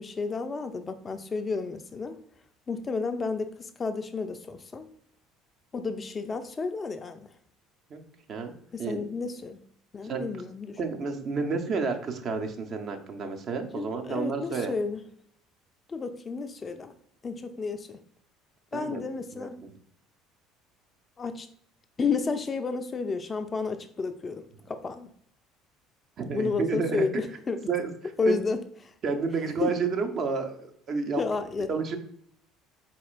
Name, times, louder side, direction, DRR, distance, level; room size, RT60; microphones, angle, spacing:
voice 1, 0.0-2.2 2.7-4.9 5.7-7.3 8.7-9.6 9.9-10.8 13.8-15.0 15.9-16.9 17.2-18.0 18.7-19.5 21.2-21.5 22.0-25.1 26.3-27.6 28.2-28.6 29.6-29.7 31.2-31.7, left 4 dB, 30° left, 9 dB, 0.4 m, -31 dB
voice 2, 10.8-14.7 18.7-19.0 19.3-19.7 26.2-27.2 27.7-27.9 28.3-28.4 29.0-31.2 31.7-32.0, right 5 dB, 45° right, 4 dB, 0.6 m, -30 dB
4.2 x 4.2 x 2.4 m, 0.65 s
figure-of-eight pair, 60°, 0 cm